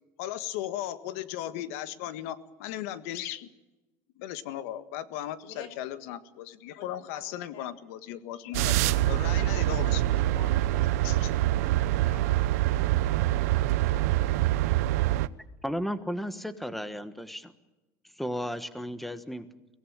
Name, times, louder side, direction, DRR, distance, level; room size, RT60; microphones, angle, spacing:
voice 1, 0.2-3.5 4.2-10.4 11.0-11.3, left 12 dB, 75° left, 12 dB, 1.7 m, -37 dB
sound 1, 8.5-15.3, right 15 dB, 90° right, 0.8 m, -25 dB
voice 2, 8.9-14.4, left 5 dB, 55° left, 10 dB, 5.6 m, -51 dB
voice 3, 15.6-17.5 18.2-19.5, equal, ahead, 11 dB, 1.3 m, -34 dB
24.0 x 18.0 x 8.8 m, 1.1 s
cardioid pair, 145°, 8 cm